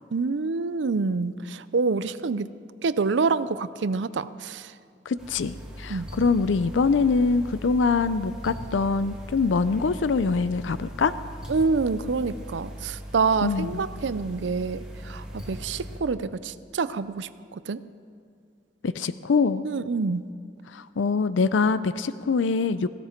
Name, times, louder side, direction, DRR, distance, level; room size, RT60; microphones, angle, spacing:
voice 1, 0.1-2.5 2.8-4.7 5.9-6.1 11.5-17.8 19.6-20.2, right 4 dB, 80° right, 15 dB, 0.5 m, -27 dB
voice 2, 5.1-11.1 13.4-13.9 18.8-19.7 20.7-22.9, left 4 dB, 85° left, 14 dB, 0.5 m, -24 dB
sound 1, 5.2-16.0, equal, 5° right, 2.4 m, -40 dB
17.5 x 16.0 x 4.4 m, 2.3 s
head